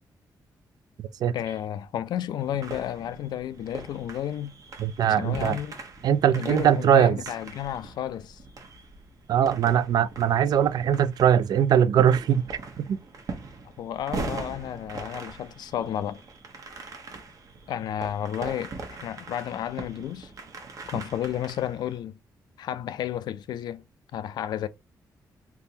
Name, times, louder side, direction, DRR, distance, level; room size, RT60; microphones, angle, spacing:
voice 1, 1.3-4.5 5.1-5.8 6.3-8.4 13.8-16.2 17.7-18.7 19.0-20.3 20.9-22.1 22.6-23.8 24.1-24.7, left 10 dB, 80° left, 0.4 m, -32 dB
sound 1, 2.4-22.0, right 3 dB, 55° right, 0.9 m, -41 dB
voice 2, 4.8-5.6 6.0-7.2 9.3-12.4 12.8-13.0, right 9 dB, 70° right, 0.3 m, -21 dB
3.6 x 2.9 x 2.6 m
cardioid pair, 105°, 7 cm